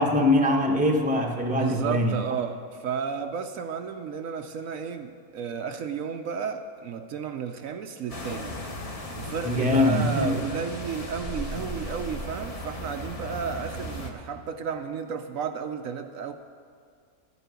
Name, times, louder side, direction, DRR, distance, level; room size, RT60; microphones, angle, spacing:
voice 1, 0.0-2.1 9.4-10.4, left 1 dB, 5° right, 1 dB, 0.9 m, -22 dB
voice 2, 1.6-8.6 9.2-16.3, right 6 dB, 70° right, 7 dB, 1.0 m, -33 dB
sound 1, 8.1-14.1, left 1 dB, 25° left, 1.0 m, -36 dB
13.0 x 8.3 x 8.2 m, 2.1 s
omnidirectional pair, 1.5 m